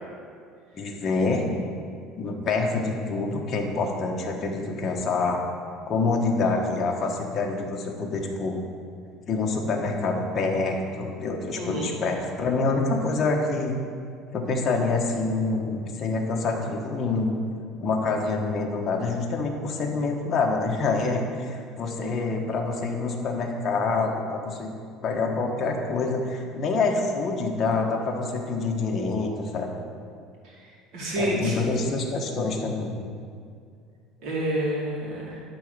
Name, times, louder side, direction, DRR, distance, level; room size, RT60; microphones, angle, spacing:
voice 1, 0.7-1.4 2.2-5.4 5.9-8.6 9.3-13.7 14.3-17.3 17.8-24.7 25.0-29.7 31.2-33.0, left 3 dB, 30° left, 0 dB, 1.2 m, -26 dB
voice 2, 11.5-12.0 30.4-31.5 34.2-35.4, right 1 dB, 55° right, -3 dB, 2.4 m, -29 dB
12.0 x 3.9 x 6.6 m, 2.3 s
cardioid pair, 165°, 0 cm